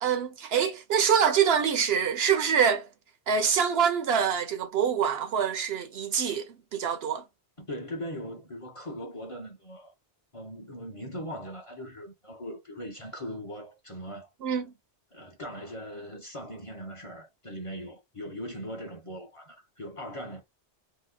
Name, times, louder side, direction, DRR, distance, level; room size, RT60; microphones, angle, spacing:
voice 1, 0.0-2.9 3.3-6.5 6.7-7.2 14.4-14.7, right 7 dB, 65° right, 0.8 m, -25 dB
voice 2, 7.6-9.9 10.3-14.3 15.1-20.4, equal, 30° left, 0.7 m, -40 dB
2.8 x 2.1 x 3.6 m
omnidirectional pair, 1.2 m